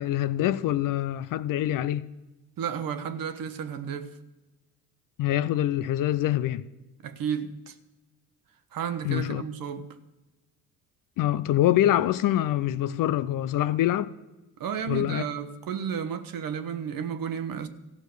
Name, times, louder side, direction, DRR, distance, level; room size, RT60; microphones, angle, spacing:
voice 1, 0.0-2.0 5.2-6.6 9.0-9.4 11.2-14.1 14.9-15.2, left 13 dB, 45° left, 0.6 m, -25 dB
voice 2, 2.6-4.2 7.0-7.8 8.7-9.9 14.6-17.7, right 7 dB, 45° right, 1.2 m, -32 dB
15.0 x 6.2 x 6.7 m
hypercardioid pair, 60°, 45 cm